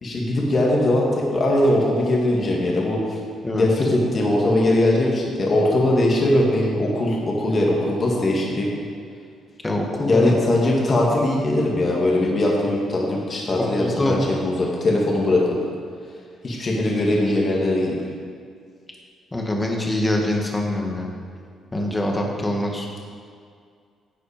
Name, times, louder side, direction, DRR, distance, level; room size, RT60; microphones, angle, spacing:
voice 1, 0.0-3.2 3.5-8.7 10.1-15.4 16.4-18.0, left 1 dB, 40° left, -2 dB, 2.3 m, -20 dB
voice 2, 9.6-10.3 13.6-14.2 19.3-21.1 21.7-22.9, left 1 dB, 15° left, 0 dB, 1.9 m, -24 dB
11.0 x 7.9 x 5.2 m, 2.2 s
cardioid pair, 90°, 0 cm